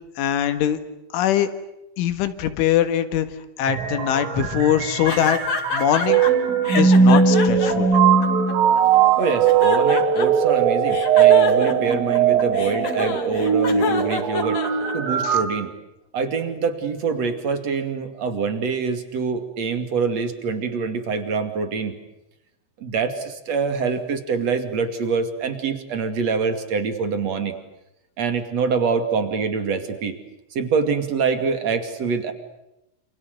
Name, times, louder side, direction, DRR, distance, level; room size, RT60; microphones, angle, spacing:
voice 1, 0.2-0.8 1.1-1.5 2.0-3.3 3.6-5.4 5.7-6.2 6.8-7.9 15.2-15.4, left 10 dB, 75° left, 9 dB, 4.0 m, -22 dB
sound 1, 3.7-15.4, right 6 dB, 80° right, 5.4 m, -19 dB
sound 2, 5.0-6.3 6.6-8.8 9.2-10.5 10.9-15.2, left 5 dB, 40° left, 2.7 m, -28 dB
voice 2, 9.2-14.6 14.9-15.7 16.1-22.0 22.8-27.6 28.2-30.2 30.5-32.3, right 5 dB, 40° right, 8 dB, 2.7 m, -25 dB
29.0 x 28.5 x 6.7 m, 0.89 s
omnidirectional pair, 5.8 m